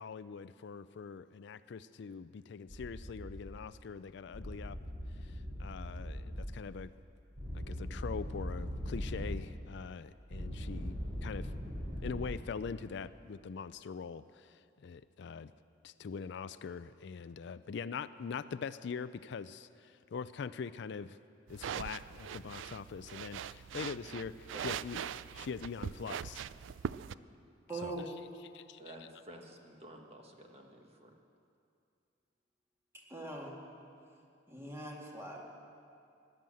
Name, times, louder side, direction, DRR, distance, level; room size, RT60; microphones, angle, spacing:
voice 1, 0.0-4.8 5.2-6.9 7.5-11.5 12.0-15.5 15.8-21.2 21.5-25.0 25.2-26.5 27.8-28.0 28.5-29.0, left 5 dB, 65° left, 14 dB, 0.4 m, -43 dB
sound 1, 2.7-3.4 4.3-6.5 7.4-9.4 10.3-12.2, equal, 55° right, 4.6 m, -40 dB
sound 2, 21.5-27.1, right 8 dB, 80° right, 0.4 m, -41 dB
voice 2, 27.7-28.1 32.9-33.6 34.5-35.4, right 2 dB, 15° right, -2 dB, 2.2 m, -42 dB
voice 3, 28.8-31.1, right 1 dB, 35° right, 2 dB, 1.3 m, -52 dB
17.0 x 11.0 x 7.7 m, 2.5 s
head